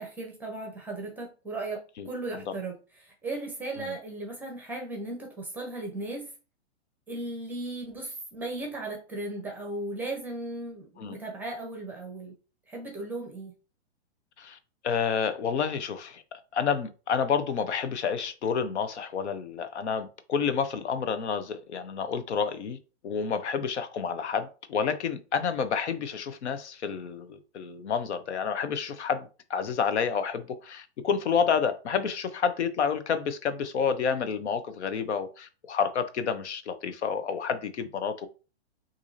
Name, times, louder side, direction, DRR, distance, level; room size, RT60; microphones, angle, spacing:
voice 1, 0.0-6.3 7.1-12.3 12.7-13.5, right 2 dB, 5° right, 0.6 m, -36 dB
voice 2, 14.8-16.2 16.5-22.8 23.0-38.3, left 6 dB, 75° left, 0.8 m, -29 dB
6.0 x 2.7 x 2.7 m
hypercardioid pair, 150°, 34 cm